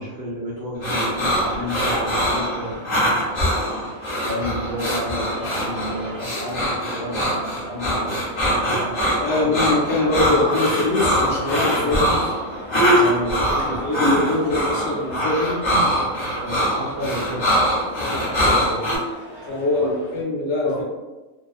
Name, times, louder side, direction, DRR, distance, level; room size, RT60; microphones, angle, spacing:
voice 1, 0.0-2.8 4.2-9.7 11.8-12.2 12.9-13.8 16.2-17.5 19.8-20.0 20.6-20.8, equal, 60° right, -5 dB, 0.7 m, -31 dB
sound 1, 0.8-19.0, equal, 25° left, 0.6 m, -22 dB
sound 2, 1.0-20.2, equal, 25° right, 0.9 m, -39 dB
voice 2, 9.2-12.2 12.9-13.1 13.4-15.6 18.0-18.8 19.4-20.8, left 2 dB, 65° left, -3 dB, 0.8 m, -23 dB
2.3 x 2.3 x 2.4 m, 1.1 s
omnidirectional pair, 1.4 m